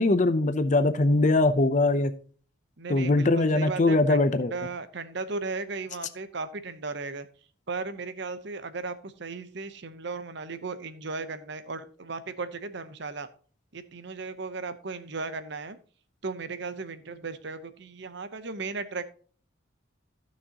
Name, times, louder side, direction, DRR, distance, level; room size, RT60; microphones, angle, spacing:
voice 1, 0.0-2.1 2.9-4.5, left 2 dB, 35° left, 10 dB, 0.6 m, -22 dB
voice 2, 2.8-4.2 4.5-7.3 7.7-13.3 13.7-15.8 16.2-19.0, right 4 dB, 55° right, 12 dB, 0.8 m, -36 dB
15.0 x 6.2 x 2.9 m, 0.42 s
head